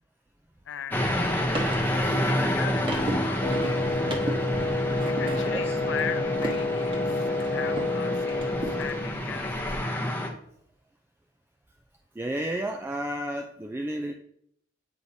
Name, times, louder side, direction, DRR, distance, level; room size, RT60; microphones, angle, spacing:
voice 1, 0.7-3.8 5.0-9.5, left 8 dB, 65° left, 10 dB, 0.4 m, -39 dB
sound 1, 0.9-10.3, equal, 10° left, 0.8 m, -29 dB
sound 2, 0.9-8.0 8.3-9.8, right 1 dB, 25° right, 1.0 m, -36 dB
Wind instrument woodwind instrument, 3.4-9.1, left 2 dB, 40° left, 0.9 m, -29 dB
voice 2, 5.4-5.8 12.2-14.1, right 1 dB, 10° right, 3 dB, 0.3 m, -32 dB
8.5 x 4.7 x 2.7 m, 0.69 s
head